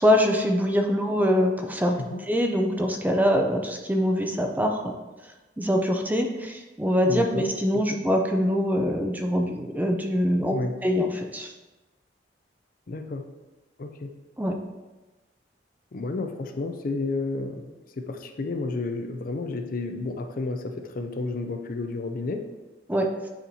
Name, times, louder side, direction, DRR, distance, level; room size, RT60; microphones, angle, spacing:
voice 1, 0.0-2.0 2.3-4.9 5.6-10.6 10.8-11.5 14.4-14.5 22.9-23.1, equal, 10° right, 3 dB, 0.5 m, -23 dB
voice 2, 7.1-8.0 10.5-10.8 12.9-13.3 13.8-14.1 15.9-22.5, left 3 dB, 50° left, 6 dB, 0.5 m, -31 dB
8.1 x 4.3 x 2.8 m, 1.1 s
head